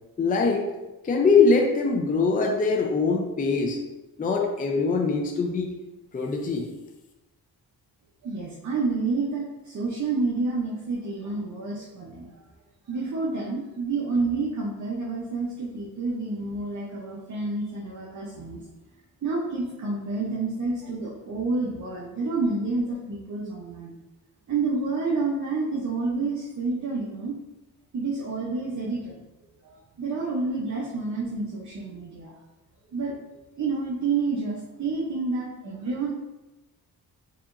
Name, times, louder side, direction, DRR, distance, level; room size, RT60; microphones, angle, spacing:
voice 1, 0.2-0.6 1.0-3.8 4.2-5.8 6.1-6.7, left 4 dB, 20° left, 1 dB, 0.4 m, -22 dB
voice 2, 8.2-12.3 12.9-18.6 19.2-23.9 24.5-27.4 27.9-29.2 29.6-32.3 32.9-33.2 33.6-36.1, right 3 dB, 45° right, -4 dB, 0.7 m, -29 dB
4.8 x 2.9 x 2.5 m, 1.0 s
cardioid pair, 100°, 39 cm